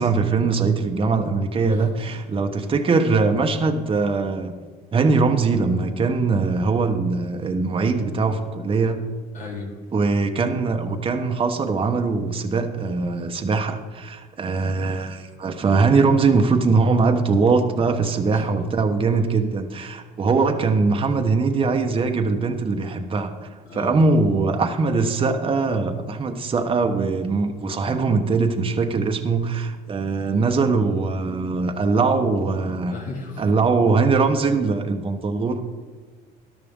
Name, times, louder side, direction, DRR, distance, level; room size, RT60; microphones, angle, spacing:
voice 1, 0.0-4.5 4.9-9.0 9.9-32.9 33.4-35.6, right 4 dB, 30° right, 4 dB, 1.1 m, -21 dB
voice 2, 1.6-2.2 2.6-2.7 9.3-9.8 18.3-18.4 23.7-24.0 32.9-33.5, left 3 dB, 50° left, -1 dB, 2.6 m, -36 dB
13.5 x 11.5 x 3.7 m, 1.5 s
cardioid pair, 110°, 17 cm